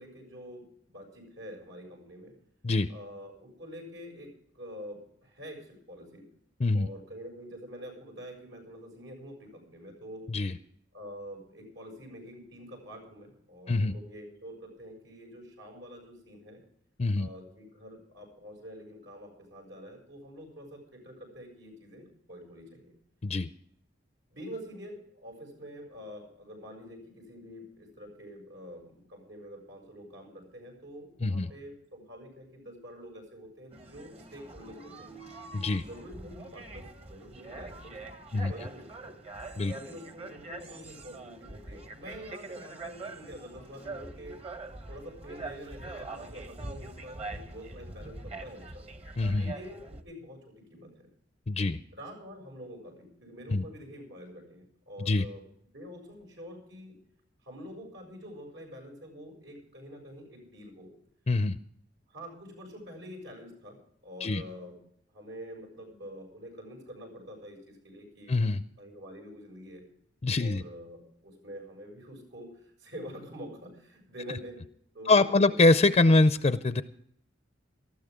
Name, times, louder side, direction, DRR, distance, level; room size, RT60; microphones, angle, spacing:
voice 1, 0.0-2.3 2.9-6.2 6.7-10.2 10.9-16.6 17.1-22.9 24.3-35.2 35.7-38.0 38.3-39.2 39.7-44.4 44.9-48.9 49.4-51.1 51.9-55.4 55.7-57.0 57.4-60.9 62.1-63.8 64.0-64.8 65.1-68.4 68.8-69.8 70.4-74.6 74.9-75.6, equal, 80° right, 1 dB, 7.2 m, -46 dB
sound 1, 33.7-50.0, right 2 dB, 35° right, 1.2 m, -44 dB
voice 2, 35.5-35.8 38.3-38.5 39.6-39.7 49.2-49.5 51.5-51.8 53.5-53.6 55.0-55.2 61.3-61.6 64.2-64.4 68.3-68.6 70.2-70.6 75.1-76.8, left 2 dB, 35° left, 11 dB, 0.5 m, -24 dB
19.0 x 14.0 x 3.7 m, 0.67 s
head